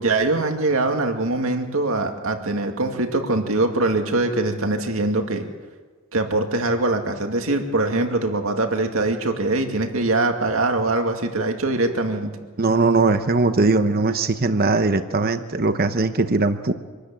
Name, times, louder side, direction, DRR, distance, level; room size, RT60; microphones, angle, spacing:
voice 1, 0.0-5.5 6.1-12.3, right 2 dB, 75° right, 4 dB, 2.3 m, -22 dB
voice 2, 12.6-16.7, right 3 dB, 45° right, 9 dB, 1.0 m, -20 dB
26.0 x 13.0 x 8.8 m, 1.4 s
head